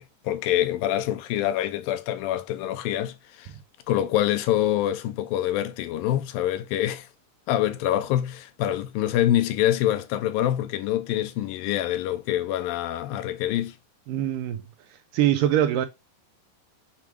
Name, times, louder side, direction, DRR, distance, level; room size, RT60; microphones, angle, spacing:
voice 1, 0.0-3.5 3.9-7.1 7.5-13.8, left 12 dB, 80° left, 2.4 m, -25 dB
voice 2, 14.1-14.6 15.1-15.9, right 11 dB, 80° right, 2.1 m, -22 dB
7.2 x 3.1 x 5.9 m
omnidirectional pair, 4.2 m